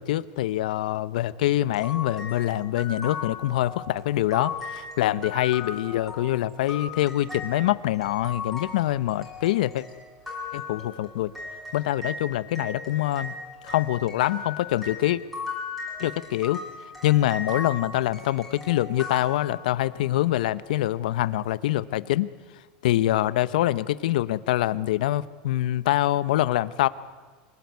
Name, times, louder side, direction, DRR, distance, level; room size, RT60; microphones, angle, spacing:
voice 1, 0.0-9.8 10.5-11.3 11.7-13.3 13.6-15.2 16.0-16.6 17.0-22.3 22.8-26.9, left 14 dB, 80° left, 16 dB, 0.9 m, -25 dB
sound 1, 1.7-12.2 12.5-19.9, left 4 dB, ahead, 6.3 m, -37 dB
26.0 x 18.5 x 9.6 m, 1.4 s
supercardioid pair, 165°, 4 cm